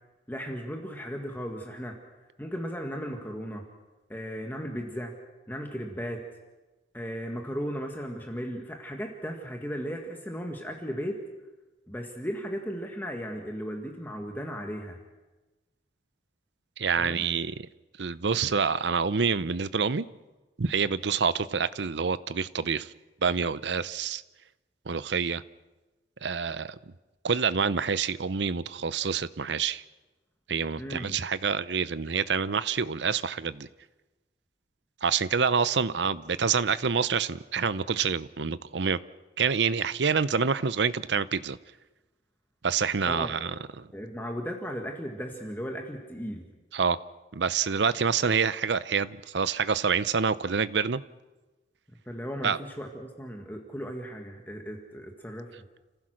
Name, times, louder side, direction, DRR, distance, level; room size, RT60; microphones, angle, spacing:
voice 1, 0.3-2.0 2.4-3.7 4.1-5.1 5.5-6.2 6.9-11.2 11.9-15.0 17.0-17.2 30.8-31.2 43.1-43.3 43.9-46.5 52.1-55.5, equal, 10° left, 2 dB, 1.7 m, -36 dB
voice 2, 16.8-17.5 18.0-20.1 20.6-22.9 23.2-24.2 24.9-25.4 26.2-26.8 27.2-29.8 30.5-33.7 35.0-39.0 39.4-41.6 42.6-43.9 46.7-47.0 47.3-51.0 52.4-52.6, right 5 dB, 75° right, 16 dB, 0.7 m, -27 dB
30.0 x 15.5 x 6.4 m, 1.1 s
head